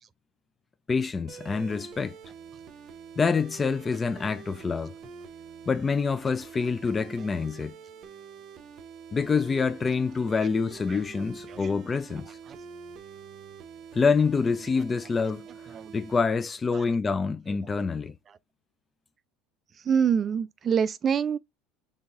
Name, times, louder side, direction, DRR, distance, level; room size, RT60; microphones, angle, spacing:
voice 1, 0.9-2.2 3.2-4.9 5.7-7.7 9.1-12.4 13.9-15.5 15.9-18.2, left 5 dB, 25° left, 0.4 m, -26 dB
sound 1, 1.3-16.2, right 6 dB, 50° right, 0.7 m, -46 dB
voice 2, 19.9-21.4, right 7 dB, 35° right, 0.3 m, -25 dB
5.4 x 3.4 x 2.4 m
hypercardioid pair, 80°, 0 cm